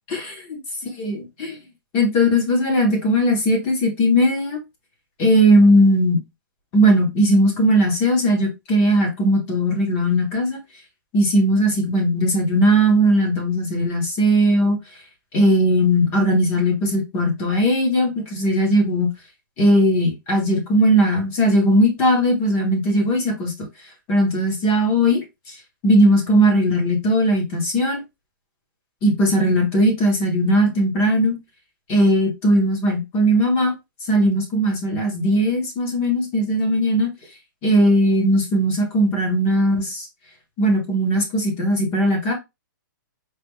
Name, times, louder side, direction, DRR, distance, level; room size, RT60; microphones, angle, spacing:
voice 1, 0.1-0.6 1.0-1.6 1.9-4.6 5.2-6.2 6.7-10.6 11.1-14.8 15.3-19.1 19.6-23.5 24.1-25.2 25.8-28.0 29.0-31.4 31.9-33.7 34.1-37.1 37.6-40.1 40.6-42.3, equal, 15° left, 0.9 m, -18 dB
4.5 x 2.4 x 3.5 m
hypercardioid pair, 180°, 11 cm